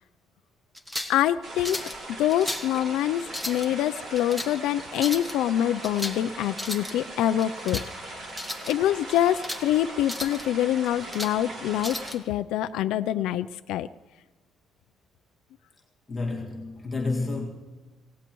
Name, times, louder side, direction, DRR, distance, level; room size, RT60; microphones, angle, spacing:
sound 1, 0.7-1.2 1.6-2.0 2.3-2.7 3.2-3.7 4.2-4.5 5.0-5.3 5.8-6.2 6.5-6.9 7.4-7.9 8.3-8.7 9.2-9.6 10.0-10.4 10.9-11.4 11.8-12.2, left 1 dB, 5° right, 1.0 m, -35 dB
voice 1, 1.1-1.9 2.2-8.2 8.7-13.9, left 12 dB, 85° left, 0.4 m, -25 dB
sound 2, 1.4-12.1, right 1 dB, 35° right, 2.6 m, -40 dB
voice 2, 16.1-17.5, left 3 dB, 15° left, 2.0 m, -30 dB
25.5 x 18.0 x 3.1 m
cardioid pair, 180°, 0 cm